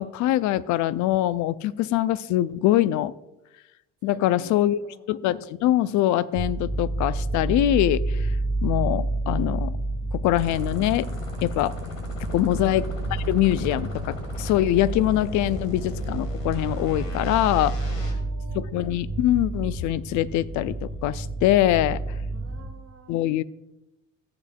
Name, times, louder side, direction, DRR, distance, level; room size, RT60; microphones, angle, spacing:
voice 1, 0.0-3.1 4.0-4.8 5.1-8.3 8.6-9.8 10.1-11.1 11.4-11.8 12.3-12.8 13.3-17.8 18.5-22.0 23.1-23.4, left 13 dB, 50° left, 17 dB, 0.5 m, -23 dB
voice 2, 4.0-5.0 12.3-12.7 17.8-18.7 22.3-23.2, right 3 dB, 35° right, 4 dB, 1.5 m, -48 dB
sound 1, 6.4-22.6, right 2 dB, 15° right, 2.3 m, -30 dB
sound 2, 10.3-18.1, left 3 dB, 85° left, 1.8 m, -38 dB
15.0 x 7.9 x 2.3 m, 0.92 s
figure-of-eight pair, 55°, 38 cm